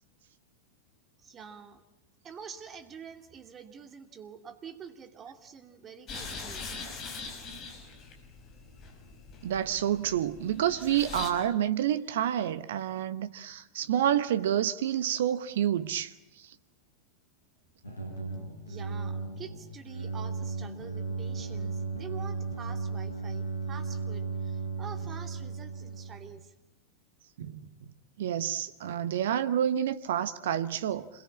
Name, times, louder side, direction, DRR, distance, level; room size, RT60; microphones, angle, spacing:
voice 1, 1.2-1.8 2.2-6.7 18.6-26.5, right 6 dB, 25° right, 2.6 m, -47 dB
sound 1, 6.1-11.3, left 4 dB, 30° left, 5.2 m, -42 dB
voice 2, 9.4-16.1 27.4-27.6 28.2-31.1, right 10 dB, 60° right, 1.0 m, -28 dB
sound 2, 17.8-26.4, right 4 dB, 75° left, 6.8 m, -35 dB
27.0 x 22.0 x 8.6 m
figure-of-eight pair, 90°, 0 cm